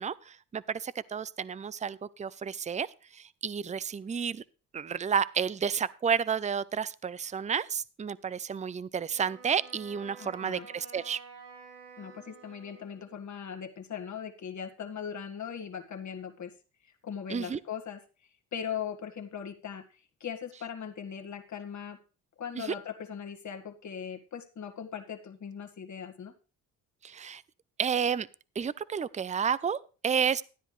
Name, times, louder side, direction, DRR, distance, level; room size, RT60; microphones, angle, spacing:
voice 1, 0.0-2.9 3.1-4.4 4.7-11.2 17.3-17.6 22.6-22.7 27.0-27.4 27.8-28.3 28.6-29.8 30.0-30.4, right 7 dB, 20° right, 19 dB, 0.5 m, -31 dB
Wind instrument woodwind instrument, 9.1-13.3, right 4 dB, 85° right, 4.7 m, -51 dB
voice 2, 10.2-10.7 12.0-16.5 16.8-18.0 18.5-22.0 22.4-26.3, left 7 dB, 50° left, 5 dB, 1.8 m, -39 dB
13.0 x 9.9 x 3.3 m, 0.35 s
supercardioid pair, 55°, 37 cm